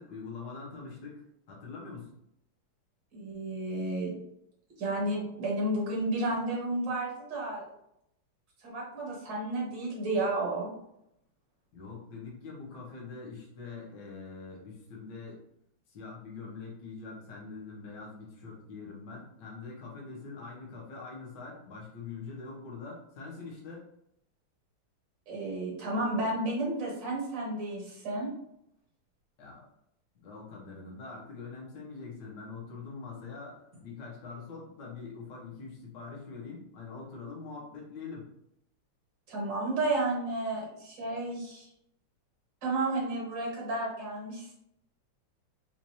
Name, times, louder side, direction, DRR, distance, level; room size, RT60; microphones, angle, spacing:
voice 1, 0.0-2.1 11.7-15.4 15.9-23.9 29.4-29.6 30.1-38.3, left 4 dB, 55° left, -3 dB, 1.4 m, -44 dB
voice 2, 3.1-4.1 4.8-7.6 8.6-10.7 25.3-28.3 39.3-41.7 42.6-44.5, right 2 dB, 60° right, -3 dB, 1.7 m, -32 dB
4.6 x 2.6 x 2.7 m, 0.78 s
omnidirectional pair, 2.4 m